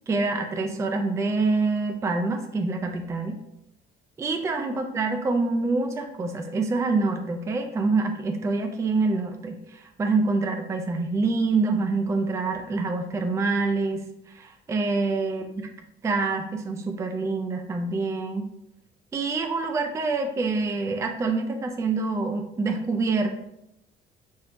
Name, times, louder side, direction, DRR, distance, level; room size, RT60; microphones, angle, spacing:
voice 1, 0.1-3.4 4.2-15.7 16.0-18.4 19.1-23.4, right 3 dB, 15° right, 4 dB, 0.3 m, -26 dB
2.8 x 2.6 x 3.3 m, 0.82 s
cardioid pair, 110°, 17 cm